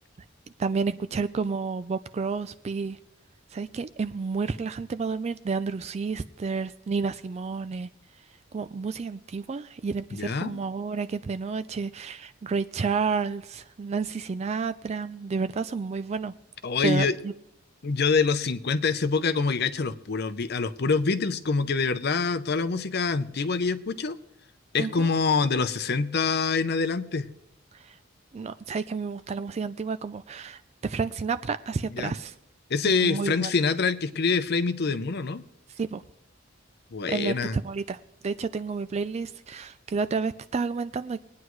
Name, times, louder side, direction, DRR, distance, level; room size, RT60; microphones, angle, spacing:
voice 1, 0.6-3.0 3.5-7.9 8.5-16.3 16.8-17.3 24.8-25.1 27.7-28.0 28.3-32.3 32.8-33.5 35.8-36.0 37.1-41.2, right 5 dB, 35° right, 12 dB, 0.3 m, -30 dB
voice 2, 10.1-10.6 16.6-17.2 17.8-24.2 24.7-27.3 31.9-32.1 32.7-35.4 36.9-37.6, left 4 dB, 55° left, 13 dB, 0.6 m, -25 dB
21.5 x 9.5 x 3.1 m, 0.85 s
head